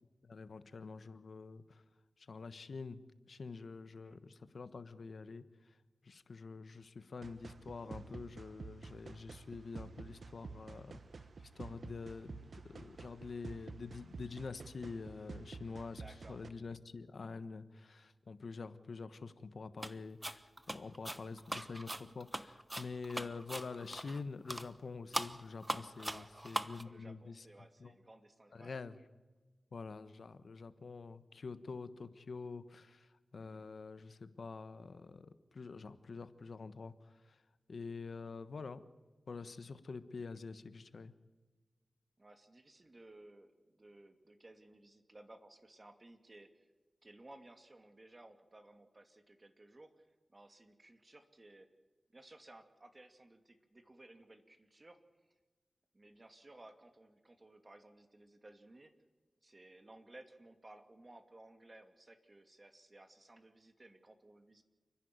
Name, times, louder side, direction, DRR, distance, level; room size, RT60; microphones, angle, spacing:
voice 1, 0.2-1.8 2.2-3.0 3.3-5.8 6.0-11.0 11.4-16.0 16.3-27.4 27.8-27.9 28.5-29.0 29.7-37.4 37.7-38.8 39.3-41.1, left 4 dB, 70° left, 12 dB, 1.2 m, -47 dB
sound 1, 7.2-16.5, right 4 dB, 65° right, 1.3 m, -50 dB
voice 2, 15.9-16.4 26.0-26.3 26.8-28.7 33.4-33.7 42.2-46.7 47.0-51.7 52.1-55.0 55.9-58.9 59.4-64.6, right 2 dB, 35° right, 7 dB, 2.5 m, -58 dB
sound 2, 19.8-20.0 20.2-24.2 24.5-24.7 25.1-26.8, right 1 dB, 15° right, 1.1 m, -41 dB
29.5 x 11.0 x 9.6 m, 1.3 s
wide cardioid pair, 65°, 0 cm